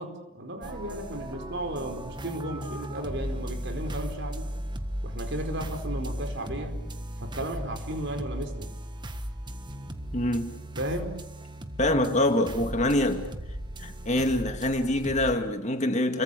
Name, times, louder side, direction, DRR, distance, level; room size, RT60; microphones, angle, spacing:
voice 1, 0.0-4.5 5.0-6.8 7.2-8.7 10.8-11.1, right 1 dB, 55° right, 4.7 m, -34 dB
sound 1, 0.6-15.3, equal, 20° right, 1.5 m, -36 dB
voice 2, 10.1-10.5 11.8-13.3 13.8-16.2, left 1 dB, 35° left, 2.2 m, -25 dB
30.0 x 23.0 x 6.9 m
head